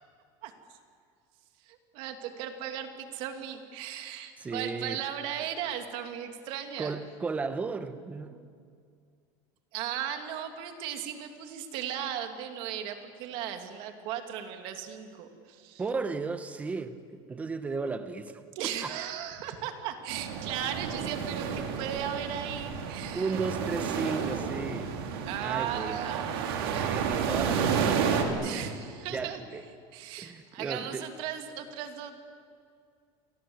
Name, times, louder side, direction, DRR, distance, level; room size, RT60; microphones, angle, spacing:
voice 1, 0.4-0.8 1.6-7.0 9.7-15.8 18.5-23.3 25.2-27.0 28.4-29.4 29.9-32.1, right 9 dB, 45° right, 6 dB, 2.6 m, -37 dB
voice 2, 4.4-5.0 6.8-8.5 15.8-18.4 18.8-18.9 23.1-24.9 25.4-28.7 29.1-29.6 30.2-31.1, right 4 dB, 10° right, 10 dB, 1.1 m, -35 dB
sound 1, 20.1-28.2, right 6 dB, 85° right, 4.0 m, -31 dB
29.5 x 23.5 x 8.0 m, 2.2 s
cardioid pair, 180°, 12 cm